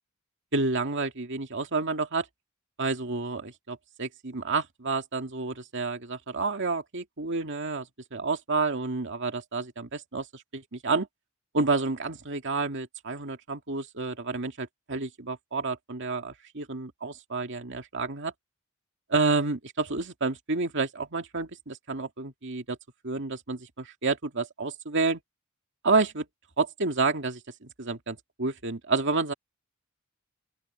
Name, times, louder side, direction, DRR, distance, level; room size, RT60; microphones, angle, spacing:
voice 1, 0.5-2.3 2.8-11.1 11.5-18.3 19.1-22.8 23.0-25.2 25.8-26.2 26.6-29.3, right 3 dB, 55° right, 2.2 m, -29 dB
open air
head